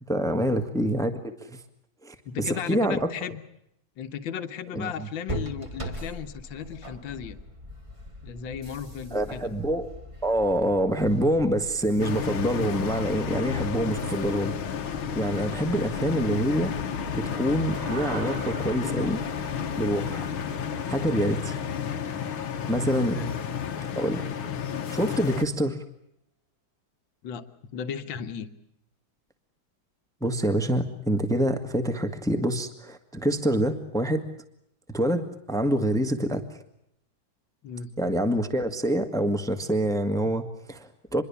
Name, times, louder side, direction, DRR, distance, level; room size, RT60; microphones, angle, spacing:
voice 1, 0.1-1.6 2.0-3.1 4.7-5.1 9.1-9.9 10.2-14.5 15.1-16.7 17.1-19.2 19.8-20.3 20.9-21.5 22.7-23.2 24.0-24.2 24.9-25.8 30.2-34.2 34.9-36.6 38.0-41.2, right 1 dB, ahead, 7 dB, 1.5 m, -26 dB
voice 2, 2.3-3.4 4.0-7.4 8.2-9.5 23.1-23.4 27.2-27.5 27.7-28.5 37.6-37.9, left 7 dB, 70° left, 9 dB, 1.9 m, -35 dB
sound 1, 5.3-21.0, equal, 15° right, 1.5 m, -42 dB
sound 2, 12.0-25.4, left 7 dB, 90° left, 2.2 m, -31 dB
sound 3, 17.7-22.2, right 3 dB, 35° right, 1.9 m, -42 dB
26.0 x 22.0 x 7.1 m, 0.75 s
omnidirectional pair, 2.2 m